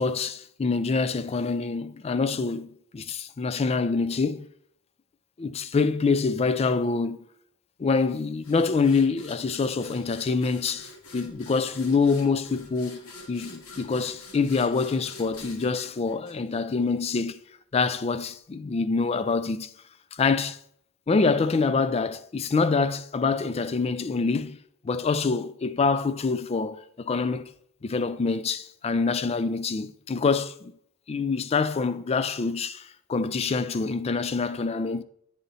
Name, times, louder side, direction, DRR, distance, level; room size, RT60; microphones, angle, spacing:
voice 1, 0.0-4.5 5.4-7.2 7.8-17.4 17.7-19.7 20.1-20.6 21.1-24.6 24.8-27.5 27.8-30.7 31.1-35.0, left 4 dB, 30° left, 0.3 m, -26 dB
sound 1, 8.4-16.9, left 2 dB, 75° left, 1.2 m, -47 dB
9.0 x 4.1 x 3.9 m
head